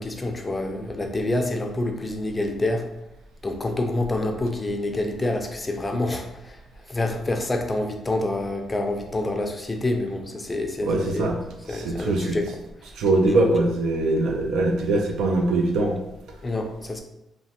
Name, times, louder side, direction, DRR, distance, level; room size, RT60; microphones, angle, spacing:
voice 1, 0.0-2.9 3.4-6.6 6.9-11.3 11.7-12.6 16.4-17.0, left 2 dB, 20° left, 4 dB, 0.4 m, -27 dB
voice 2, 10.8-11.4 11.7-12.4 13.0-16.0, right 2 dB, 80° right, 2 dB, 0.4 m, -22 dB
3.0 x 2.1 x 2.8 m, 0.88 s
cardioid pair, 90°, 0 cm